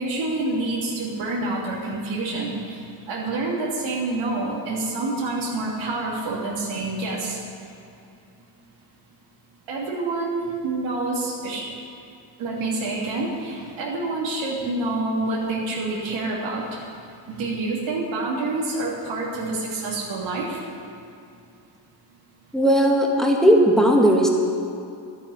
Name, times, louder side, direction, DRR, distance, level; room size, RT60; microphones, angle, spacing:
voice 1, 0.0-7.4 9.7-11.7 12.4-20.7, right 2 dB, 80° right, -5 dB, 3.1 m, -27 dB
voice 2, 22.5-24.3, equal, ahead, 0 dB, 2.2 m, -17 dB
12.0 x 9.0 x 9.9 m, 2.6 s
cardioid pair, 100°, 46 cm